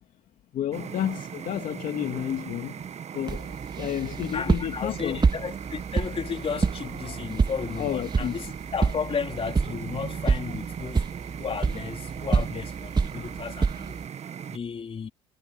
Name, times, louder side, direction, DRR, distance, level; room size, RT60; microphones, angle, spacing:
voice 1, 0.5-2.8 3.1-5.2 7.8-8.4, left 11 dB, 60° left, 2.4 m, -31 dB
sound 1, 0.7-14.6, right 8 dB, 45° right, 1.7 m, -38 dB
sound 2, 3.3-14.1, right 4 dB, 30° right, 2.1 m, -28 dB
voice 2, 4.3-11.1 11.4-14.0 14.5-15.1, left 6 dB, 40° left, 3.7 m, -34 dB
supercardioid pair, 70°, 15 cm